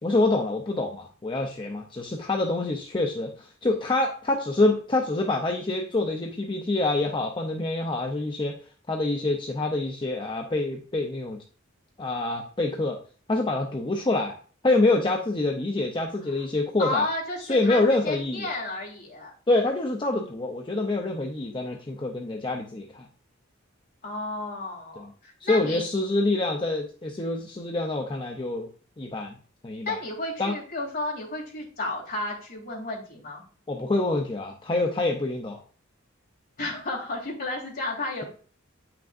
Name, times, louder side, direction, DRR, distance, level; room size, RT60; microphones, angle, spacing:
voice 1, 0.0-8.6 8.9-11.4 12.0-13.0 13.3-14.4 14.6-17.1 17.5-18.5 19.5-23.1 25.0-25.1 25.4-28.7 29.0-29.4 29.6-30.0 30.4-30.5 33.7-35.6, left 2 dB, 25° left, 2 dB, 0.6 m, -26 dB
voice 2, 16.8-19.3 24.0-25.8 29.8-33.4 36.6-38.2, left 2 dB, 50° left, -2 dB, 2.9 m, -32 dB
8.9 x 5.9 x 2.5 m, 0.42 s
head